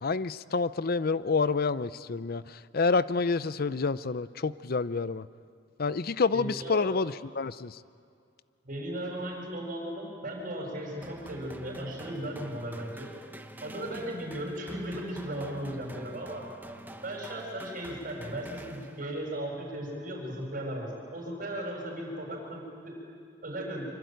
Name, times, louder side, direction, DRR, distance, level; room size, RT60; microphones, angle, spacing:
voice 1, 0.0-5.3 5.8-7.8, left 4 dB, 55° left, 16 dB, 0.6 m, -28 dB
voice 2, 6.3-6.9 8.6-13.1 13.6-16.4 17.0-23.0 23.4-23.8, right 1 dB, 50° right, 0 dB, 7.6 m, -36 dB
sound 1, 11.0-19.3, right 1 dB, 10° right, 1.1 m, -46 dB
25.5 x 24.5 x 9.3 m, 2.4 s
head